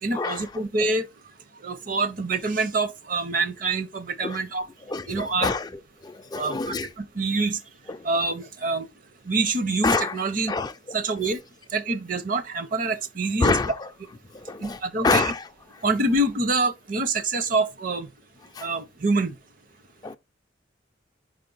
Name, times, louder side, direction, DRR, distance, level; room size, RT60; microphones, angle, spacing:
voice 1, 0.0-1.1 1.6-4.6 5.1-5.5 6.3-7.6 8.0-8.9 9.2-10.5 10.9-11.4 11.7-13.6 14.6-15.3 15.8-18.1 18.6-19.3, right 3 dB, 45° right, 0.7 m, -26 dB
voice 2, 4.9-5.6 6.0-6.9 9.8-10.1 10.5-10.7 13.4-13.7 14.5-14.8 15.0-15.4 18.6-18.7 20.0-20.2, left 4 dB, 20° left, 0.3 m, -25 dB
5.1 x 4.9 x 3.9 m
head